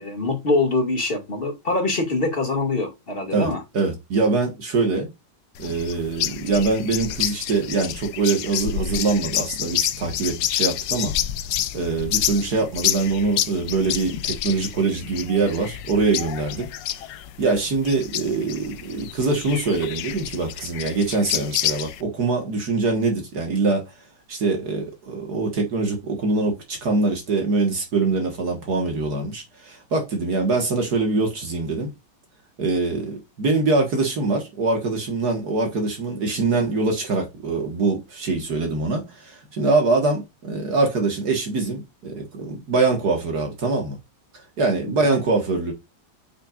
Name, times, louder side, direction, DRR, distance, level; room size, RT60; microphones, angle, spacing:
voice 1, 0.0-3.6 44.9-45.1, left 2 dB, 30° left, 2.4 m, -24 dB
voice 2, 3.3-5.1 5.6-11.1 11.7-16.7 17.4-23.8 24.3-31.9 32.6-44.0 44.6-45.7, right 3 dB, 60° right, 2.1 m, -23 dB
sound 1, 5.6-22.0, left 12 dB, 85° left, 1.4 m, -28 dB
7.8 x 6.0 x 2.5 m
omnidirectional pair, 1.9 m